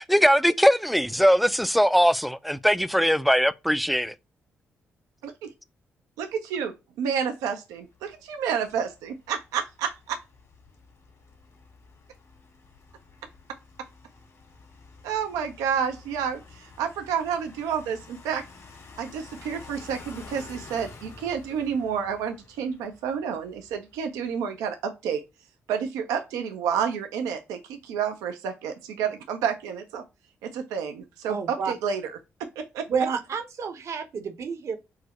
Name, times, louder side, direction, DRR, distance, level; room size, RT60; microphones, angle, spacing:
voice 1, 0.0-4.1, equal, ahead, 0.4 m, -21 dB
voice 2, 6.2-10.2 15.0-18.4 19.0-25.2 25.7-30.0 30.4-32.9, right 7 dB, 85° right, 0.5 m, -30 dB
sound 1, 7.9-24.1, left 4 dB, 55° left, 1.7 m, -50 dB
voice 3, 31.3-31.7 32.9-34.8, right 6 dB, 60° right, 0.8 m, -29 dB
4.7 x 2.1 x 2.9 m
hypercardioid pair, 45°, 6 cm